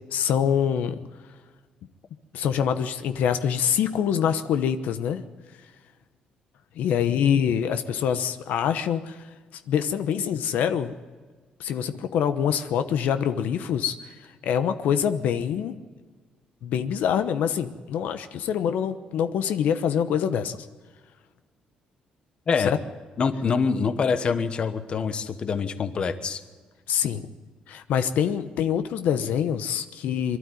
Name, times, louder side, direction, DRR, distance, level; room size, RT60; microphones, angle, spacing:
voice 1, 0.1-1.0 2.3-5.2 6.8-9.2 9.7-10.9 11.6-14.1 14.4-15.8 16.6-20.7 22.6-22.8 26.9-27.3 27.7-30.4, left 8 dB, 80° left, 10 dB, 1.0 m, -25 dB
voice 2, 23.2-26.4, left 5 dB, 40° left, 11 dB, 1.1 m, -25 dB
23.0 x 12.5 x 9.3 m, 1.5 s
cardioid pair, 140°, 3 cm